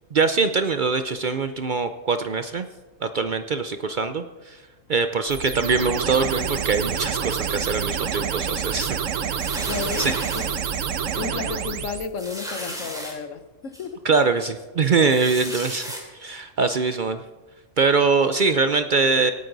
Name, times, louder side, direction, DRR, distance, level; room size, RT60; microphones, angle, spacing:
voice 1, 0.1-2.7 3.0-4.6 4.9-9.0 9.3-9.7 10.0-10.1 14.0-17.2 17.8-19.3, right 4 dB, 55° right, 9 dB, 0.6 m, -23 dB
sound 1, 5.3-12.1, right 7 dB, 75° right, 1.2 m, -28 dB
sound 2, 9.4-10.5 11.1-11.2 11.5-11.6 12.2-13.1 13.7-13.8 15.1-16.0, equal, 5° right, 2.8 m, -34 dB
voice 2, 9.7-10.5 11.0-14.0, left 6 dB, 80° left, 9 dB, 1.3 m, -33 dB
26.0 x 9.2 x 3.9 m, 1.3 s
omnidirectional pair, 1.3 m